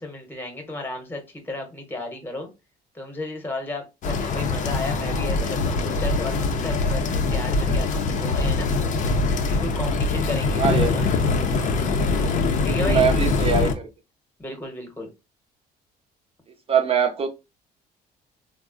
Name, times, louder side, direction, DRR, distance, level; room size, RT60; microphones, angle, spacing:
voice 1, 0.0-2.5 2.9-8.7 9.4-11.0 12.6-13.0 14.4-15.1, left 1 dB, 10° left, 0.8 m, -34 dB
sound 1, 4.0-13.7, left 3 dB, 45° left, 0.5 m, -23 dB
voice 2, 10.6-11.1 12.6-13.9 16.7-17.3, right 6 dB, 35° right, 0.5 m, -23 dB
3.5 x 2.0 x 2.4 m
cardioid pair, 110°, 17 cm